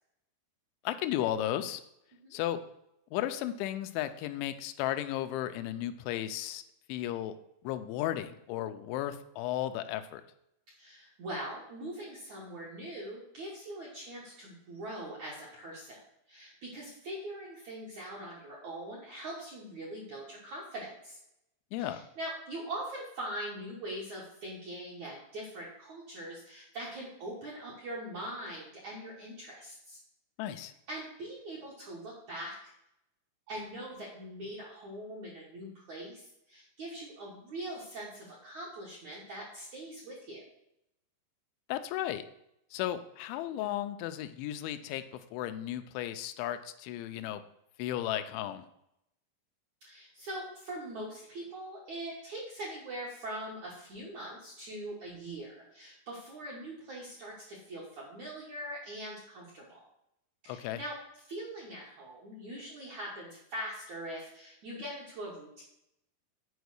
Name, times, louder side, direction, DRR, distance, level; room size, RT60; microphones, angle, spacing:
voice 1, 0.8-1.8 2.3-2.6 3.1-6.6 6.9-7.4 7.6-10.2 21.7-22.0 30.4-30.7 41.7-42.2 42.7-45.0 45.3-47.4 47.8-48.6 60.5-60.8, left 12 dB, 85° left, 9 dB, 2.8 m, -34 dB
voice 2, 10.8-16.0 16.3-21.2 21.8-30.0 30.9-32.7 33.5-40.4 43.6-43.8 49.8-59.8 60.4-60.9 61.3-65.6, right 1 dB, 60° right, -5 dB, 1.9 m, -42 dB
8.1 x 5.1 x 6.4 m, 0.80 s
omnidirectional pair, 5.6 m